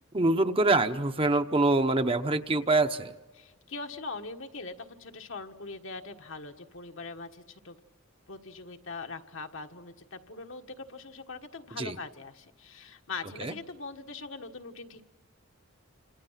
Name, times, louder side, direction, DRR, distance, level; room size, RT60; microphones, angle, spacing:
voice 1, 0.1-3.1 11.8-12.0 13.4-13.5, right 2 dB, 25° right, 8 dB, 0.9 m, -25 dB
voice 2, 3.3-7.8 8.3-15.0, left 3 dB, 65° left, 5 dB, 1.5 m, -42 dB
29.0 x 27.0 x 5.8 m, 1.2 s
head